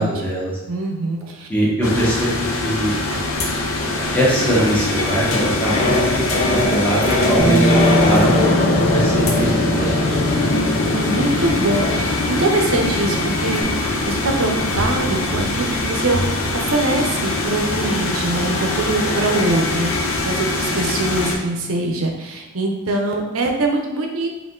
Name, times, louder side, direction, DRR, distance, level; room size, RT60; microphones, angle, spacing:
voice 1, 0.0-0.5 1.5-2.9 3.9-8.5 8.9-10.4, right 1 dB, 5° left, -7 dB, 1.1 m, -22 dB
voice 2, 0.7-1.5 3.1-3.3 10.4-13.6 14.1-16.2 16.5-24.3, right 2 dB, 80° right, 2 dB, 0.7 m, -23 dB
sound 1, 1.8-21.4, left 2 dB, 75° left, 0.6 m, -23 dB
sound 2, 5.3-21.6 21.9-22.0, left 2 dB, 30° left, 0.5 m, -24 dB
Bass guitar, 7.4-13.6, right 2 dB, 20° right, 0.6 m, -24 dB
4.3 x 2.6 x 3.8 m, 1.1 s
head